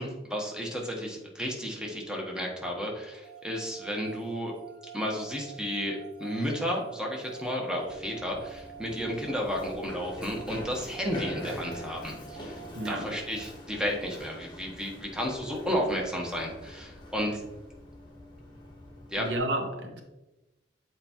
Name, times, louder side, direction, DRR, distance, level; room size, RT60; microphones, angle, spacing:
voice 1, 0.0-4.5 4.9-12.6 12.8-17.4 19.1-19.3, equal, 5° right, 1.0 m, -32 dB
sound 1, 3.2-13.5, right 8 dB, 50° right, 1.0 m, -48 dB
Run, 7.8-19.4, left 1 dB, 25° left, 1.1 m, -44 dB
voice 2, 12.7-13.1 19.2-20.0, right 1 dB, 80° right, 0.9 m, -31 dB
7.7 x 4.6 x 2.9 m
head